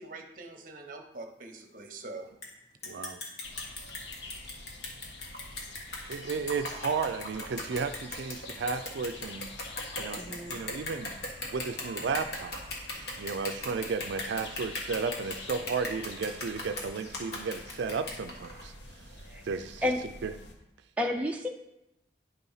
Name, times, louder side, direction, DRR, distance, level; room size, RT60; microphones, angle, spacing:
voice 1, 0.0-2.3, right 3 dB, 45° right, 5 dB, 0.8 m, -44 dB
sound 1, 2.4-2.5 2.8-18.7, left 2 dB, 60° left, 1.5 m, -38 dB
voice 2, 2.8-3.2 6.1-9.5 10.0-11.1 11.5-12.6 12.9-19.1 19.4-19.9 20.2-20.3, right 5 dB, 70° right, 8 dB, 0.4 m, -34 dB
sound 2, 3.4-20.5, left 2 dB, 75° left, 1.0 m, -48 dB
voice 3, 10.2-10.6 19.3-19.4 19.8-20.0 21.0-21.5, left 1 dB, 5° right, 1 dB, 0.4 m, -30 dB
9.7 x 4.0 x 5.6 m, 0.88 s
head